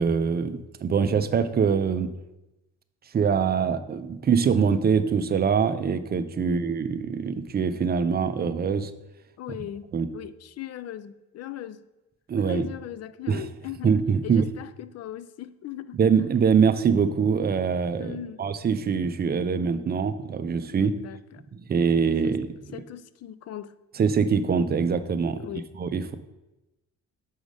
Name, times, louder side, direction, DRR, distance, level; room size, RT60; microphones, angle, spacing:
voice 1, 0.0-2.1 3.1-8.9 9.9-10.1 12.3-12.7 13.3-13.5 13.8-14.5 15.9-20.9 21.5-22.5 24.0-25.5 25.8-26.2, right 6 dB, 30° right, 11 dB, 0.5 m, -24 dB
voice 2, 9.4-11.8 12.5-13.9 14.2-16.0 18.0-18.5 20.7-21.4 22.2-22.4 22.7-23.7 25.4-25.7, left 11 dB, 55° left, 15 dB, 0.4 m, -39 dB
6.3 x 4.9 x 5.2 m, 1.0 s
cardioid pair, 105°, 31 cm